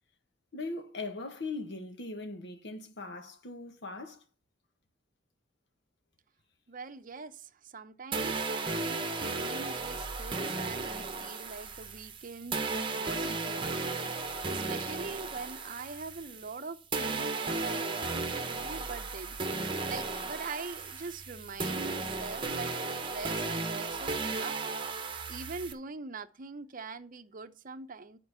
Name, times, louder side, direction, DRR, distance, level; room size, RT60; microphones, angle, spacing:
voice 1, 0.5-4.2, left 3 dB, 65° left, 1.4 m, -40 dB
voice 2, 6.7-19.4 19.9-28.2, right 4 dB, 45° right, 0.7 m, -43 dB
sound 1, 8.1-16.6 16.9-25.7, right 3 dB, 25° right, 1.1 m, -35 dB
10.5 x 4.5 x 6.9 m
head